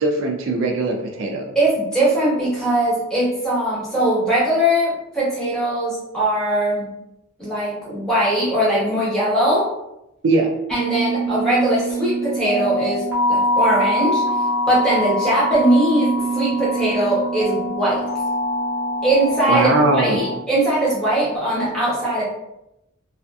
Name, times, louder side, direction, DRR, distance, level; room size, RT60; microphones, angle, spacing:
voice 1, 0.0-1.5 10.2-10.5 19.5-20.2, right 2 dB, 65° right, 0 dB, 0.4 m, -20 dB
voice 2, 1.5-6.9 7.4-9.7 10.7-18.0 19.0-22.2, right 1 dB, 5° left, -9 dB, 1.0 m, -20 dB
sound 1, 10.7-20.4, equal, 10° right, 0.6 m, -23 dB
2.5 x 2.4 x 2.3 m, 0.87 s
head